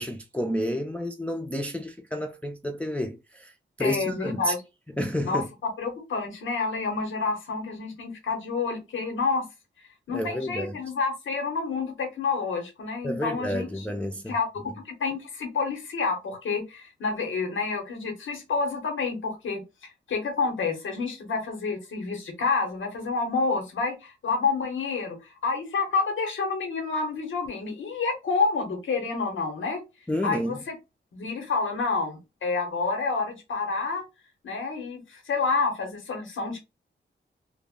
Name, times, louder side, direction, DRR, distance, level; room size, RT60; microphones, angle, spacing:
voice 1, 0.0-3.5 3.8-4.5 5.0-5.5 10.1-10.8 13.0-14.3 30.1-30.6, equal, 5° left, 0.4 m, -30 dB
voice 2, 3.8-4.6 5.2-9.5 10.1-13.8 14.3-14.5 14.9-29.8 30.2-30.7 31.1-34.0 34.4-36.6, left 4 dB, 90° left, 0.8 m, -29 dB
2.1 x 2.1 x 3.5 m
cardioid pair, 75°, 20 cm